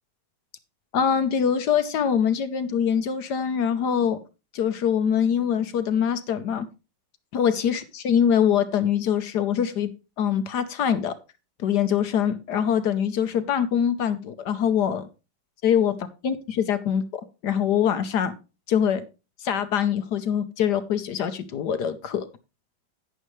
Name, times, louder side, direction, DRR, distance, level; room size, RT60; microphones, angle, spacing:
voice 1, 0.9-4.2 4.5-6.7 7.3-9.9 10.2-11.2 11.6-15.1 15.6-15.9 16.2-18.3 18.7-19.0 19.4-22.3, left 8 dB, 65° left, 11 dB, 1.3 m, -23 dB
11.0 x 9.1 x 3.1 m, 0.29 s
omnidirectional pair, 2.1 m